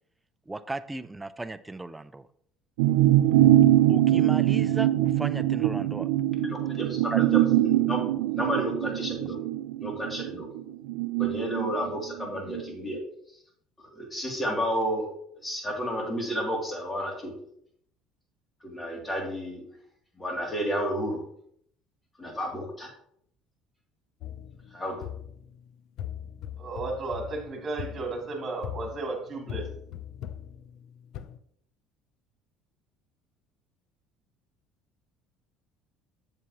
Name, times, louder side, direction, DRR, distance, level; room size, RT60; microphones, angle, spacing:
voice 1, 0.5-2.3 3.9-6.1 7.1-7.2, right 2 dB, 15° right, 12 dB, 0.5 m, -35 dB
sound 1, 2.8-12.6 13.0-13.1, right 14 dB, 85° right, 0.3 m, -23 dB
voice 2, 6.4-8.0 8.3-9.4 9.8-10.5 11.2-13.0 13.8-15.1 15.4-17.3 18.6-19.6 20.2-21.2 22.2-22.9 24.7-25.1, equal, 20° left, 0 dB, 2.6 m, -31 dB
sound 2, 24.2-31.4, left 10 dB, 65° left, 0.5 m, -41 dB
voice 3, 26.6-29.7, right 3 dB, 40° right, 1 dB, 2.7 m, -34 dB
7.6 x 7.1 x 2.9 m, 0.69 s
supercardioid pair, 80°, 0 cm